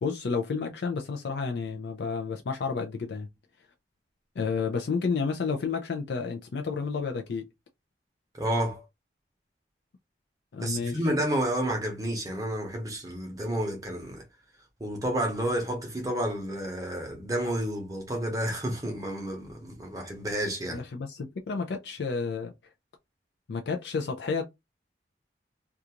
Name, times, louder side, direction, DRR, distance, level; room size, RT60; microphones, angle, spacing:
voice 1, 0.0-3.3 4.4-7.5 10.5-11.0 20.6-22.5 23.5-24.4, left 5 dB, 75° left, 0.4 m, -31 dB
voice 2, 8.3-8.8 10.6-14.2 14.8-20.8, right 1 dB, 20° right, 0.7 m, -30 dB
2.4 x 2.3 x 2.8 m
head